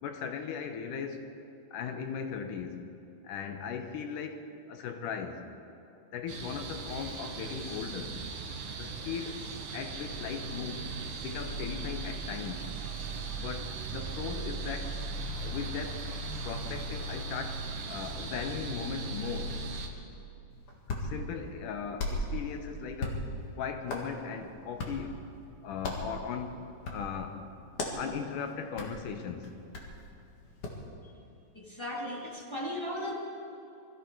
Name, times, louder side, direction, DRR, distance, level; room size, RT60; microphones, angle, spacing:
voice 1, 0.0-1.3 1.7-2.8 3.2-5.5 6.1-8.3 8.8-9.4 9.7-10.9 11.2-12.7 13.3-15.1 15.4-16.1 16.4-19.6 21.0-25.2 25.6-27.4 28.0-29.5, left 6 dB, 75° left, 6 dB, 2.4 m, -38 dB
sound 1, 6.3-19.9, right 3 dB, 70° right, 2.6 m, -38 dB
Hands, 20.5-30.9, left 1 dB, 45° left, 2.3 m, -39 dB
voice 2, 31.5-33.1, left 1 dB, 10° left, -3 dB, 1.3 m, -36 dB
21.5 x 14.0 x 4.6 m, 2.7 s
omnidirectional pair, 3.9 m